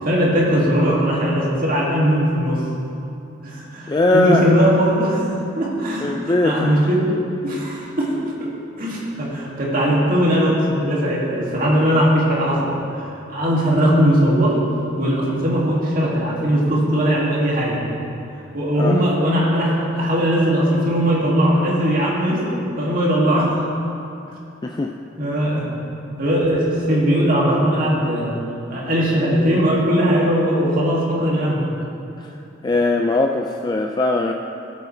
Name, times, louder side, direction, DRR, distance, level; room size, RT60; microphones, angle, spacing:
voice 1, 0.0-2.6 3.4-5.3 5.6-7.1 7.4-8.5 8.8-12.7 13.0-14.6 15.0-17.8 18.5-23.7 25.2-25.7 26.2-28.3 28.7-31.6, equal, 50° right, -5 dB, 2.4 m, -19 dB
voice 2, 3.9-4.5 6.0-6.7 18.8-19.0 24.6-24.9 32.2-32.4 32.6-34.3, left 2 dB, 20° left, 2 dB, 0.4 m, -20 dB
17.0 x 8.5 x 3.3 m, 2.7 s
head